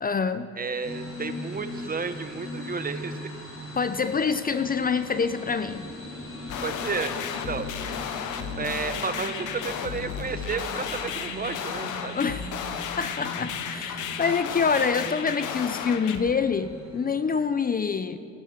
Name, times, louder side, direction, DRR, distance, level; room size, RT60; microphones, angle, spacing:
voice 1, 0.0-0.5 3.8-5.9 12.1-12.5 13.0-18.2, left 5 dB, 30° left, 12 dB, 0.5 m, -26 dB
voice 2, 0.5-3.3 6.6-7.1 7.5-7.6 8.6-12.2, right 5 dB, 30° right, 10 dB, 0.9 m, -32 dB
sound 1, 0.8-17.1, left 1 dB, 45° left, 3.9 m, -40 dB
sound 2, 6.5-16.2, left 8 dB, 85° left, 1.0 m, -34 dB
15.0 x 13.0 x 5.9 m, 2.6 s
cardioid pair, 90°, 30 cm